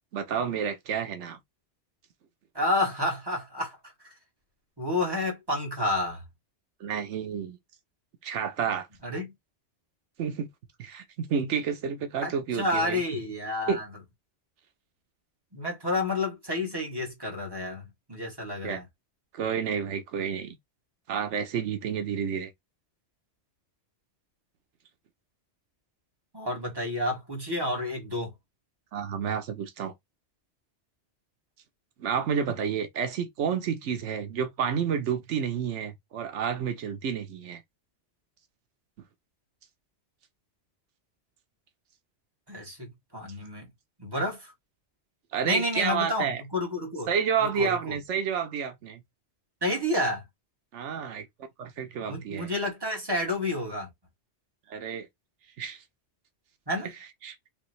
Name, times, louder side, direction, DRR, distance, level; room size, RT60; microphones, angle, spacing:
voice 1, 0.1-1.4 6.8-7.6 8.2-8.9 10.2-10.5 10.8-13.0 13.7-13.8 18.6-18.8 19.3-20.6 21.1-22.5 28.9-29.9 32.0-37.6 45.3-46.4 47.1-49.0 50.7-51.3 51.6-52.5 54.7-55.1 55.6-55.8 56.8-56.9 57.2-57.4, right 7 dB, 85° right, 1.1 m, -30 dB
voice 2, 2.5-3.8 4.8-6.2 9.0-9.3 12.2-13.8 15.5-18.8 26.3-28.3 42.5-43.7 44.0-44.5 45.4-47.1 47.4-48.0 49.6-50.2 52.1-53.9 56.7-56.9, left 1 dB, 20° right, 2.0 m, -30 dB
5.3 x 3.0 x 3.1 m
omnidirectional pair, 1.2 m